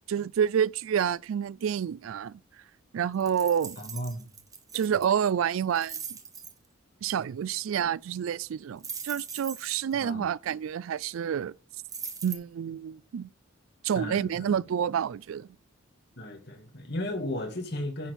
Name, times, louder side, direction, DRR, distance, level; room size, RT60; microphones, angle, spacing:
voice 1, 0.1-2.4 2.9-3.8 4.7-6.0 7.0-11.5 12.2-13.3 13.8-15.5, right 8 dB, 80° right, 0.3 m, -28 dB
sound 1, 3.2-5.1 5.6-6.5 8.8-9.9 11.9-12.3, right 6 dB, 15° right, 1.0 m, -40 dB
voice 2, 3.8-4.3 10.0-10.3 14.0-14.6 16.2-18.1, left 1 dB, 50° left, 2.3 m, -35 dB
10.0 x 4.4 x 6.7 m
head